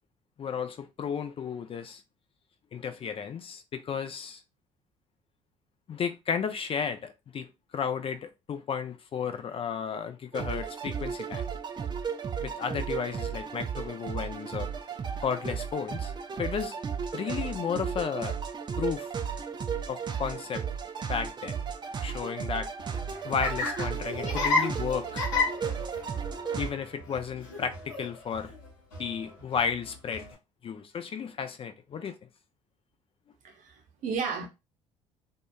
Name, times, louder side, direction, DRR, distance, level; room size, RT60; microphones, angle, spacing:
voice 1, 0.4-2.0 2.7-4.4 5.9-11.4 12.4-14.7 15.2-16.1 16.4-16.7 17.1-18.4 18.8-19.1 19.9-20.6 21.1-21.6 22.0-22.7 23.2-25.3 26.6-28.5 29.0-30.3 30.6-32.2, left 7 dB, 35° left, 0.4 m, -33 dB
sound 1, 10.3-26.7, right 7 dB, 30° right, 0.5 m, -34 dB
Laughter, 22.8-30.3, left 3 dB, 85° left, 0.9 m, -33 dB
voice 2, 33.4-34.5, right 5 dB, 55° right, 0.8 m, -33 dB
2.7 x 2.2 x 2.3 m
hypercardioid pair, 55°, 16 cm